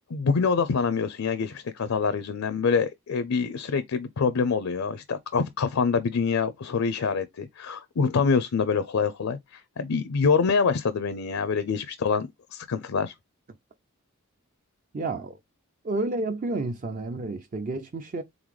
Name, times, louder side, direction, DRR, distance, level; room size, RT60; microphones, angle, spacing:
voice 1, 0.1-13.1, left 5 dB, 70° left, 0.5 m, -25 dB
voice 2, 14.9-15.4 15.8-18.2, right 2 dB, 35° right, 0.4 m, -30 dB
3.9 x 3.7 x 3.1 m
head